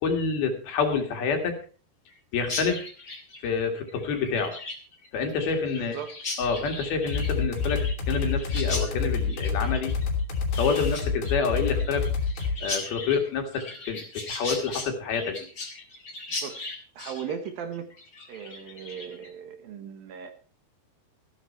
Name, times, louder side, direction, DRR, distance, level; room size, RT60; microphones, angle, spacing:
voice 1, 0.0-1.6 2.3-2.9 3.4-4.6 5.1-6.0 6.4-9.9 10.6-12.1 12.6-15.5, left 5 dB, 65° left, 5 dB, 3.7 m, -28 dB
Chirp tweet, 2.4-19.3, left 3 dB, 25° left, 2.1 m, -38 dB
voice 2, 5.7-6.1 16.4-16.7 17.0-17.9 18.3-20.3, right 7 dB, 65° right, 7 dB, 2.8 m, -37 dB
sound 1, 7.1-12.6, left 5 dB, 85° left, 5.0 m, -27 dB
14.5 x 12.5 x 4.4 m, 0.38 s
omnidirectional pair, 4.8 m